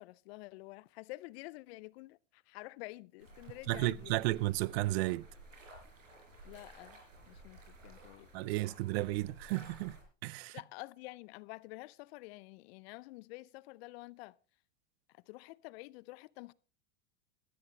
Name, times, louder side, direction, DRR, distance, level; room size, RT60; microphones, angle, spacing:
voice 1, 0.0-4.2 6.4-7.0 7.3-8.6 10.5-14.4 15.1-16.5, left 22 dB, 55° left, 0.6 m, -49 dB
sound 1, 3.2-10.0, right 1 dB, 90° right, 4.7 m, -54 dB
voice 2, 3.7-5.3 8.3-10.0 10.2-10.6, right 19 dB, 55° right, 0.6 m, -33 dB
16.5 x 13.0 x 3.3 m
hypercardioid pair, 100°, 38 cm